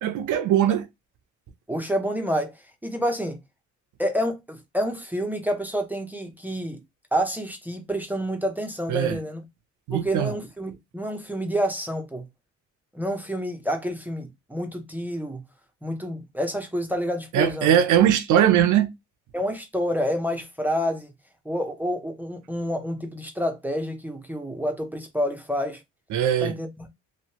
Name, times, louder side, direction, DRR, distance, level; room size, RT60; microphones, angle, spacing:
voice 1, 0.0-0.9 8.9-9.2 9.9-10.3 17.3-18.9 26.1-26.5, right 10 dB, 80° right, 0.7 m, -20 dB
voice 2, 1.7-3.4 4.0-6.8 7.1-9.4 9.9-12.3 12.9-15.4 15.8-17.7 19.3-21.1 21.4-25.8 26.4-26.9, equal, 5° right, 0.7 m, -28 dB
3.0 x 2.7 x 2.9 m
cardioid pair, 90°, 30 cm